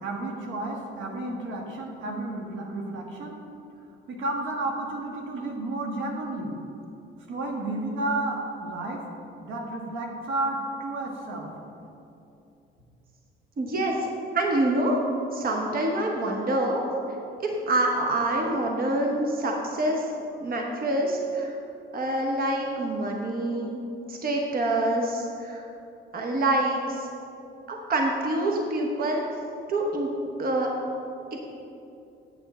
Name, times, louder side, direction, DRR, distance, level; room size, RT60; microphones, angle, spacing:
voice 1, 0.0-3.4 4.1-6.5 7.3-9.1 9.4-11.5, right 2 dB, 80° right, 0 dB, 1.4 m, -31 dB
voice 2, 13.6-14.0 14.3-15.0 15.3-16.8 17.7-20.1 20.4-21.5 21.9-23.8 24.1-25.6 26.1-27.1 27.7-29.2 29.7-30.1 30.4-30.7, right 1 dB, 45° right, 1 dB, 1.0 m, -26 dB
8.2 x 7.8 x 4.2 m, 2.7 s
cardioid pair, 90°, 20 cm